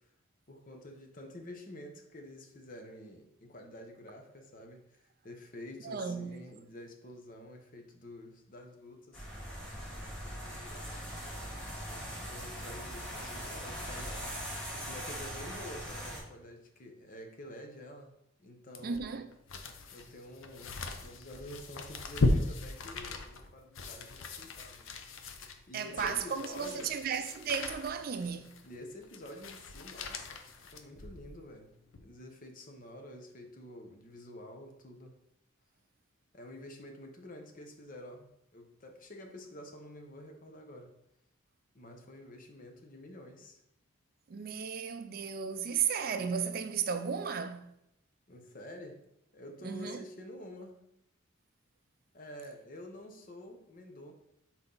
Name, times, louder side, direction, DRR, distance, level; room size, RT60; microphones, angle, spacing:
voice 1, 0.5-9.3 10.2-19.1 19.9-24.9 25.7-27.0 28.6-30.4 30.7-31.7 32.0-35.1 36.3-40.9 41.7-43.6 48.3-49.0 49.3-50.8 52.1-54.1, left 1 dB, 40° left, 0.9 m, -49 dB
voice 2, 5.8-6.4 18.8-19.3 25.7-28.6 44.3-47.7 49.6-50.0, right 6 dB, 45° right, 0.4 m, -34 dB
sound 1, 9.1-16.2, equal, 5° left, 1.9 m, -41 dB
sound 2, 18.7-31.4 31.9-32.0, left 2 dB, 75° left, 0.7 m, -37 dB
5.8 x 4.4 x 3.9 m
head